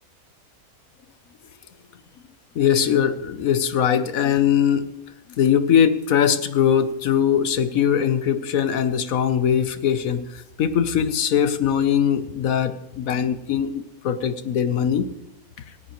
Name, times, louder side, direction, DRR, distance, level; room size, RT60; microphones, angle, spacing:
voice 1, 2.5-4.9 5.4-15.1, left 8 dB, 70° left, 12 dB, 1.2 m, -21 dB
17.0 x 16.5 x 3.1 m, 0.87 s
omnidirectional pair, 1.6 m